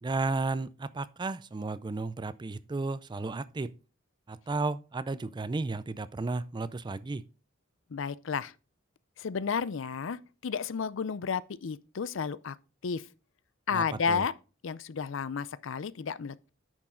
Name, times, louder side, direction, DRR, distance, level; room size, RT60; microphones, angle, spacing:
voice 1, 0.0-3.7 4.3-7.2 13.7-14.2, right 3 dB, 25° right, 0.4 m, -33 dB
voice 2, 7.9-8.5 9.2-12.6 12.8-13.1 13.7-14.3 14.6-16.5, left 6 dB, 70° left, 0.5 m, -32 dB
10.0 x 6.2 x 3.8 m
head